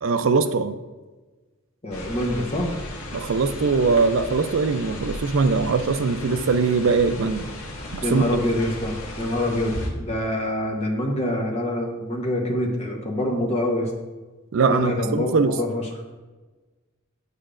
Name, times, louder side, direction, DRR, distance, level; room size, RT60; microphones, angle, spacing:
voice 1, 0.0-0.8 3.1-7.5 7.9-8.2 14.5-15.6, right 4 dB, 65° right, 10 dB, 0.4 m, -21 dB
voice 2, 1.8-2.7 8.0-13.9 14.7-15.8, left 1 dB, 30° left, 0 dB, 1.0 m, -25 dB
sound 1, 1.9-9.9, left 1 dB, 85° left, 1.3 m, -35 dB
8.1 x 6.7 x 2.5 m, 1.2 s
head